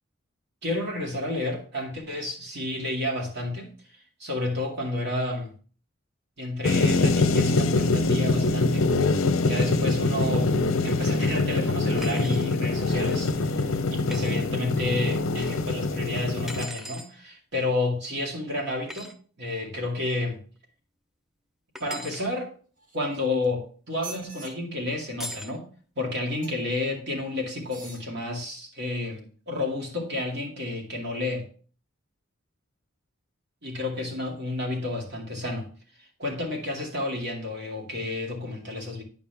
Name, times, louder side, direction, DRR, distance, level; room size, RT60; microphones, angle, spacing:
voice 1, 0.6-3.7 4.2-5.5 6.4-20.4 21.8-22.5 22.9-25.7 26.0-31.5 33.6-35.7 36.2-39.0, left 2 dB, 55° right, 0 dB, 2.4 m, -31 dB
sound 1, 6.6-16.7, left 3 dB, 75° left, 0.6 m, -24 dB
sound 2, 12.0-12.5 14.1-14.3 16.5-17.1 18.9-19.1 21.7-22.3 25.2-25.6, equal, ahead, 0.6 m, -39 dB
sound 3, 22.8-23.5 23.9-24.5 26.4-26.8 27.6-28.1 28.7-28.8, right 4 dB, 40° right, 1.8 m, -44 dB
10.0 x 5.1 x 3.4 m, 0.42 s
head